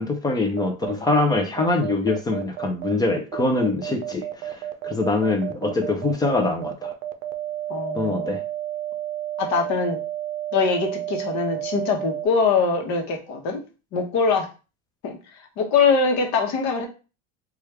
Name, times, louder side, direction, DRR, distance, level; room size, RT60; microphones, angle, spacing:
voice 1, 0.0-4.6 4.8-6.9 7.9-8.4, left 3 dB, 10° left, 0.4 m, -24 dB
sound 1, 0.6-12.3, right 14 dB, 75° right, 0.6 m, -31 dB
voice 2, 7.7-8.4 9.4-10.0 10.5-13.6 13.9-14.5 15.0-15.2 15.6-16.9, left 5 dB, 50° left, 1.0 m, -22 dB
3.1 x 2.3 x 3.2 m
supercardioid pair, 130°, 37 cm